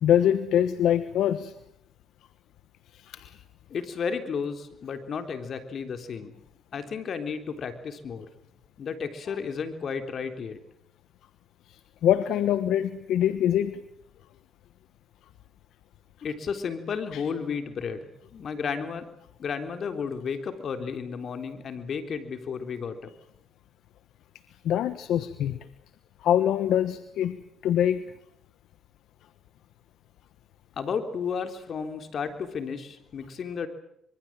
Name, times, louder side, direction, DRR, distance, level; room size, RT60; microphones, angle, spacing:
voice 1, 0.0-1.5 2.9-3.4 12.0-13.8 17.1-17.2 24.6-25.6 26.2-27.4 27.6-28.0, left 10 dB, 80° left, 12 dB, 1.2 m, -24 dB
voice 2, 3.7-6.4 6.7-8.3 8.8-10.6 16.2-19.1 19.4-23.1 30.8-33.7, left 6 dB, 55° left, 7 dB, 3.6 m, -33 dB
25.5 x 23.5 x 7.6 m, 0.77 s
cardioid pair, 75°, 0 cm